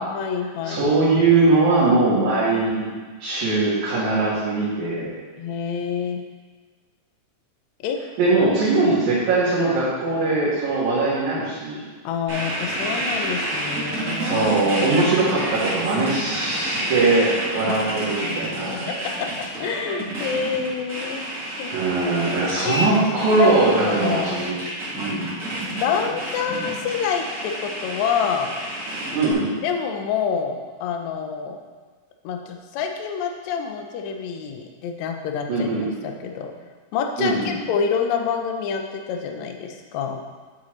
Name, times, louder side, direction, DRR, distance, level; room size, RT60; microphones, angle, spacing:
voice 1, 0.1-0.9 5.4-6.2 7.8-8.0 8.8-9.0 12.0-15.0 17.7-17.8 18.7-19.3 19.6-21.3 21.6-21.7 22.6-22.8 23.4-24.4 25.7-28.5 29.6-31.6 32.2-35.7 36.0-36.5 36.9-40.2, left 6 dB, 75° left, 3 dB, 1.7 m, -27 dB
voice 2, 0.6-2.9 3.2-5.1 8.2-11.8 14.2-18.8 21.7-24.6 25.0-25.3 29.1-29.5 35.5-35.8 37.2-37.6, right 3 dB, 65° right, -13 dB, 3.1 m, -21 dB
sound 1, 12.3-29.3, right 1 dB, 30° right, 1.7 m, -29 dB
8.2 x 7.5 x 3.2 m, 1.5 s
omnidirectional pair, 3.8 m